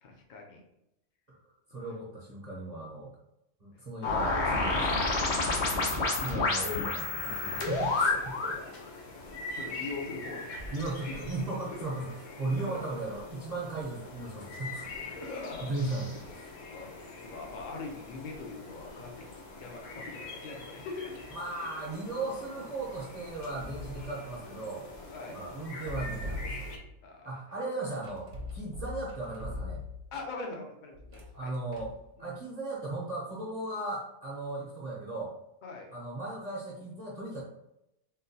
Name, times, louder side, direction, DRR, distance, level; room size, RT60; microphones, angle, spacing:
voice 1, 0.0-0.6 1.7-1.8 5.7-6.7 9.2-10.7 11.2-11.8 12.6-12.8 15.1-15.7 16.7-16.9 17.2-19.3 19.6-21.3 25.1-25.4 27.0-27.3 30.1-31.5 32.2-32.3 35.6-35.9, left 3 dB, 50° left, 1 dB, 0.7 m, -42 dB
voice 2, 1.7-3.1 3.6-5.1 6.2-8.6 10.7-12.1 12.4-15.1 15.6-16.5 21.3-24.9 25.3-26.7 27.2-29.8 31.3-31.9 32.2-35.3 35.9-37.4, right 2 dB, 45° right, -5 dB, 0.6 m, -37 dB
sound 1, 4.0-8.6, left 3 dB, 65° left, 1.0 m, -29 dB
sound 2, 7.2-26.8, left 2 dB, 85° left, 1.1 m, -44 dB
sound 3, 21.1-21.5 23.4-24.3 25.7-27.0 28.0-30.2 30.9-32.1, left 2 dB, 65° right, 1.0 m, -41 dB
3.8 x 2.2 x 2.7 m, 0.83 s
omnidirectional pair, 1.3 m